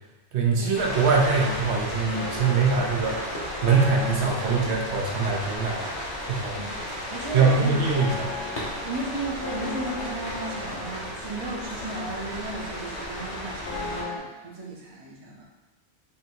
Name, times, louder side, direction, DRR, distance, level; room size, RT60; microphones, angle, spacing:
voice 1, 0.3-3.1 3.6-5.8 6.3-6.6 7.3-8.3, right 4 dB, 70° right, -1 dB, 0.9 m, -23 dB
sound 1, 0.7-14.0, equal, 45° left, 1.0 m, -34 dB
sound 2, 0.9-14.2, left 3 dB, 75° left, 1.0 m, -40 dB
voice 2, 7.1-7.7 8.8-15.4, right 2 dB, 30° right, -3 dB, 0.6 m, -35 dB
3.6 x 2.6 x 4.4 m, 1.1 s
omnidirectional pair, 1.3 m